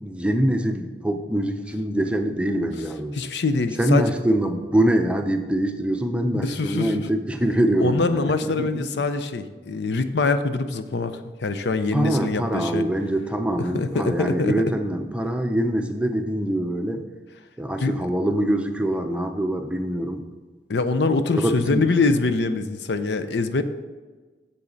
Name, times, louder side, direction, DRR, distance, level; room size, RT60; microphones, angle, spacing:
voice 1, 0.0-3.2 3.8-9.0 11.9-17.1 17.6-20.2 21.3-21.9, right 1 dB, 5° right, 6 dB, 0.5 m, -24 dB
voice 2, 3.2-4.1 6.3-6.9 7.8-12.9 13.7-14.5 17.8-18.1 20.7-23.6, left 3 dB, 85° left, 10 dB, 0.6 m, -24 dB
8.7 x 7.0 x 3.9 m, 1.4 s
head